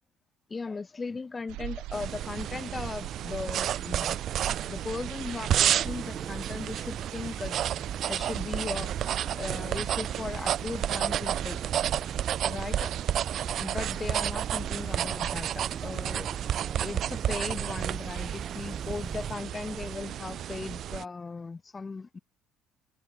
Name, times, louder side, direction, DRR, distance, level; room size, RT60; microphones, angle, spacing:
voice 1, 0.5-4.2 4.7-7.6 8.1-8.9 9.3-11.6 12.4-12.9 13.6-16.3 16.8-22.2, left 4 dB, 15° left, 1.6 m, -37 dB
sound 1, 1.5-15.1, right 18 dB, 65° right, 1.3 m, -45 dB
sound 2, 1.9-21.0, right 10 dB, 40° right, 0.4 m, -31 dB
sound 3, 5.5-19.4, right 6 dB, 25° right, 2.8 m, -42 dB
cardioid pair, 180°, 0 cm